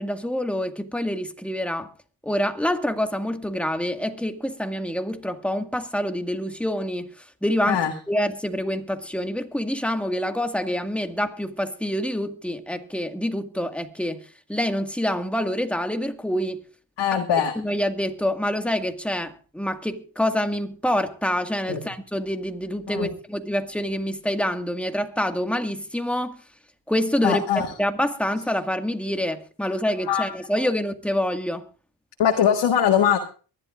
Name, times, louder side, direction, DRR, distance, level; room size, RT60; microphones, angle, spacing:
voice 1, 0.0-1.9 2.2-14.2 14.5-16.6 17.6-26.4 26.9-31.7, equal, 5° left, 1.9 m, -26 dB
voice 2, 17.0-17.5 21.7-21.8 22.9-23.1 27.2-27.7 30.1-30.2 30.6-30.7 32.2-33.2, left 9 dB, 75° left, 1.8 m, -21 dB
23.5 x 11.5 x 2.5 m
cardioid pair, 75°, 43 cm